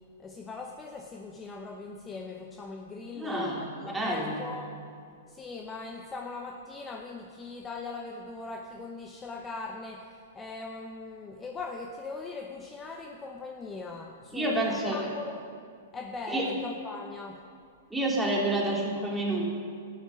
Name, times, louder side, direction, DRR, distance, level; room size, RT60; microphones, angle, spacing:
voice 1, 0.2-4.7 5.3-15.4 15.9-17.4, left 3 dB, 15° left, 2 dB, 0.8 m, -40 dB
voice 2, 3.1-3.6 3.9-4.4 14.3-15.1 16.3-16.5 17.9-19.4, right 1 dB, 5° right, -3 dB, 3.0 m, -28 dB
12.5 x 9.3 x 5.9 m, 2.2 s
hypercardioid pair, 120°, 0 cm